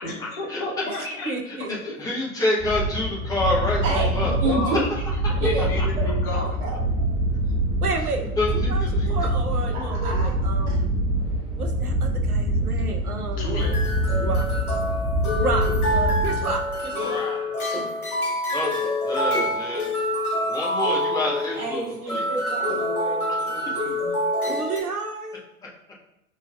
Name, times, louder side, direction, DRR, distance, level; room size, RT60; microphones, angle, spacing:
voice 1, 0.0-1.3 1.9-2.0 4.4-4.8 5.4-7.1 13.4-13.8 17.0-17.8, left 2 dB, 40° left, -1 dB, 1.1 m, -32 dB
voice 2, 0.9-1.7 4.2-4.3 4.7-4.8 5.3-5.4 7.8-8.3 8.5-10.9 11.6-13.7 14.1-14.5 15.3-17.1 24.4-25.4, right 3 dB, 85° right, 3 dB, 0.7 m, -31 dB
voice 3, 2.0-4.3 8.4-9.1 18.5-19.9 20.4-21.8 22.1-22.2, left 1 dB, 10° left, -4 dB, 0.6 m, -27 dB
sound 1, 2.6-16.9, right 1 dB, 10° right, 1.2 m, -25 dB
voice 4, 4.4-4.8 5.4-5.6 6.0-6.1 6.3-6.7 9.7-10.3 10.7-10.8 21.5-24.2, right 3 dB, 30° right, -5 dB, 1.5 m, -30 dB
sound 2, 13.6-24.8, left 1 dB, 80° left, 1.2 m, -26 dB
4.5 x 3.3 x 2.2 m, 0.85 s
figure-of-eight pair, 95°, 44 cm